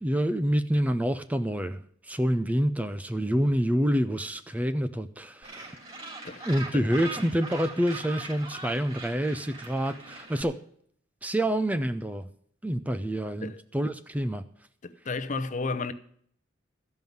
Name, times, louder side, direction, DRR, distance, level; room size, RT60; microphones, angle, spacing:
voice 1, 0.0-5.8 6.4-10.6 11.2-12.3 12.6-14.4, equal, 10° right, 0.5 m, -27 dB
Gull seagull, 5.4-10.4, right 3 dB, 30° right, 2.9 m, -41 dB
voice 2, 14.8-15.9, left 3 dB, 40° left, 0.7 m, -32 dB
14.0 x 5.4 x 9.2 m
head